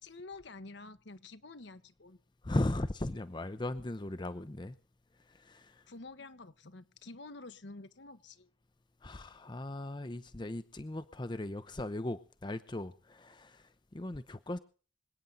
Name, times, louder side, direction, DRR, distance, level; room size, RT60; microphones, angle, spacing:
voice 1, 0.0-2.2 5.9-8.5, left 3 dB, 60° left, 1.0 m, -49 dB
voice 2, 2.4-4.8 5.3-5.9 9.0-14.6, left 1 dB, 25° left, 0.6 m, -37 dB
26.0 x 9.1 x 3.9 m
head